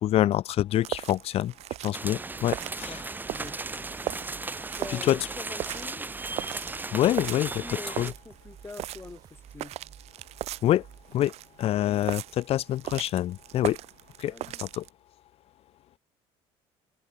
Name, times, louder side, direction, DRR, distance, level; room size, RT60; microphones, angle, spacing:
voice 1, 0.0-1.5 1.8-3.0 4.9-5.2 6.9-8.1 10.6-10.8 11.1-11.3 11.6-13.8 14.2-14.8, left 13 dB, 55° left, 1.4 m, -26 dB
sound 1, 0.7-14.9, right 14 dB, 60° right, 1.2 m, -39 dB
sound 2, 1.9-8.1, right 3 dB, 15° right, 5.5 m, -36 dB
sound 3, 2.2-11.2, right 7 dB, 35° right, 7.7 m, -53 dB
voice 2, 2.8-4.1 4.4-6.1 7.6-9.7 14.3-14.6, left 3 dB, 20° left, 7.3 m, -45 dB
cardioid pair, 115°, 12 cm